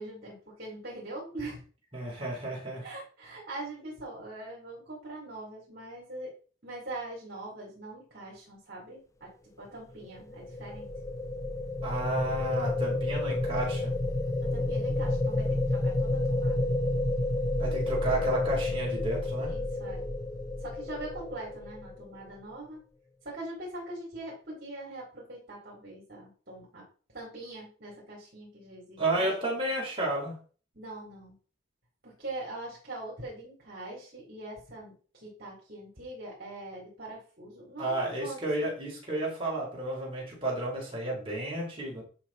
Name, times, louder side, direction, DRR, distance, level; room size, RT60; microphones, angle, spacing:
voice 1, 0.0-1.6 2.8-6.3 6.6-9.3 9.6-10.9 14.4-16.7 19.4-20.0 20.6-22.8 23.2-26.8 27.1-29.6 30.7-31.3 32.0-38.7, right 2 dB, 50° right, -4 dB, 4.2 m, -42 dB
voice 2, 1.9-2.9 11.8-13.9 14.6-14.7 17.6-19.5 29.0-30.4 37.8-42.0, right 2 dB, 25° right, -3 dB, 4.5 m, -32 dB
sound 1, 10.0-22.2, left 2 dB, 15° left, 0.5 m, -30 dB
11.0 x 5.9 x 4.4 m, 0.39 s
head